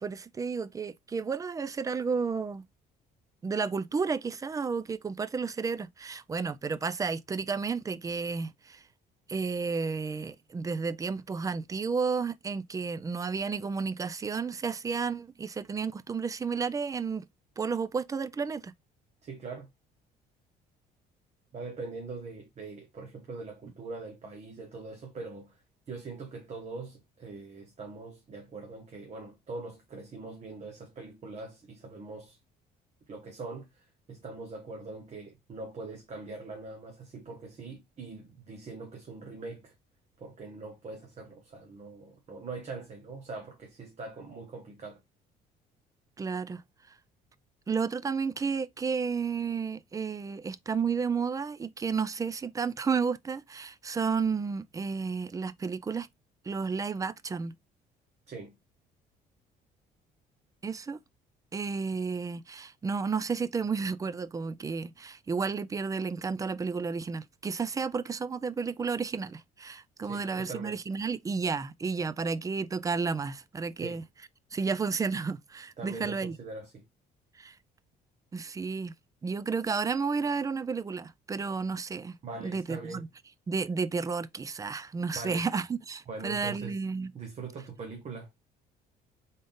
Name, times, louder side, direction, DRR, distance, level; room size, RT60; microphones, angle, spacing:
voice 1, 0.0-2.6 3.4-8.8 9.3-17.3 17.6-18.7 46.2-46.6 47.7-56.1 56.5-57.5 60.6-61.0 61.5-74.0 74.5-76.4 77.4-77.5 78.3-78.9 79.2-82.2 82.4-83.1 83.5-87.1, right 5 dB, 20° right, 0.3 m, -32 dB
voice 2, 19.2-19.7 21.5-25.5 25.9-32.4 33.1-33.6 34.1-39.7 40.2-45.0 58.3-58.5 70.0-70.8 73.8-74.0 75.8-76.8 82.2-83.0 85.1-85.4 86.1-86.8 87.1-88.3, right 3 dB, 40° right, 1.3 m, -42 dB
3.9 x 3.7 x 3.6 m
cardioid pair, 110°, 17 cm